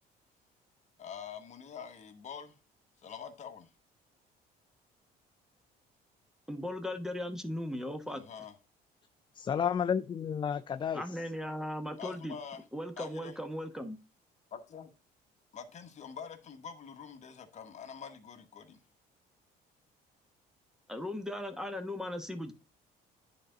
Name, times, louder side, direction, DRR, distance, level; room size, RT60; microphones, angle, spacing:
voice 1, 1.0-2.6 3.0-3.7 8.1-8.5 12.0-12.6 13.0-13.4 14.5-14.9 15.5-18.8, left 7 dB, 45° left, 1.3 m, -45 dB
voice 2, 6.5-8.2 10.9-12.3 12.7-14.0 20.9-22.5, left 1 dB, 5° right, 1.0 m, -37 dB
voice 3, 9.4-11.0, left 7 dB, 30° left, 0.3 m, -31 dB
9.8 x 4.0 x 3.8 m
cardioid pair, 110°, 17 cm